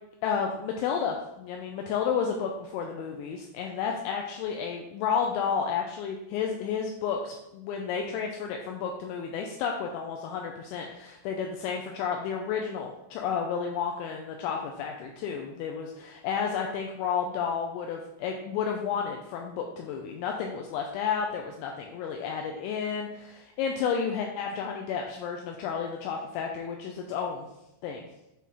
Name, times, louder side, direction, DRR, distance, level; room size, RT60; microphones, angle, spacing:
voice 1, 0.2-27.5 27.8-28.1, left 6 dB, 85° left, 2 dB, 2.7 m, -31 dB
8.2 x 3.8 x 4.2 m, 0.90 s
omnidirectional pair, 5.8 m